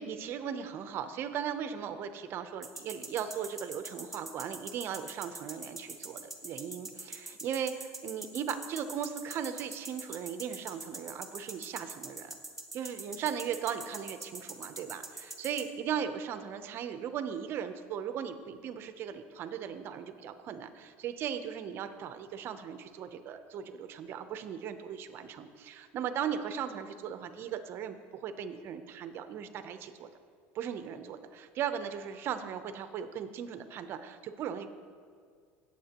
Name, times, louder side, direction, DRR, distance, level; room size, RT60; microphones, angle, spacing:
voice 1, 0.0-12.4 12.7-30.1 30.5-34.7, right 8 dB, 40° right, 9 dB, 0.7 m, -38 dB
sound 1, 2.6-15.6, right 3 dB, ahead, 1.2 m, -42 dB
18.0 x 7.4 x 2.9 m, 2.1 s
cardioid pair, 140°, 6 cm